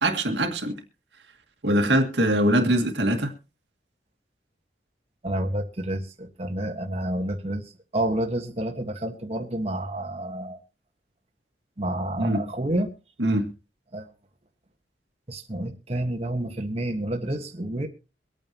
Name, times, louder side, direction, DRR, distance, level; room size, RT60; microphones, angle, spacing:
voice 1, 0.0-0.8 1.6-3.3 12.2-12.4 13.2-13.5, right 1 dB, 85° right, 2.1 m, -22 dB
voice 2, 5.2-10.6 11.8-12.9 13.9-14.1 15.3-17.9, right 1 dB, 35° right, 1.5 m, -29 dB
24.5 x 9.0 x 3.0 m
head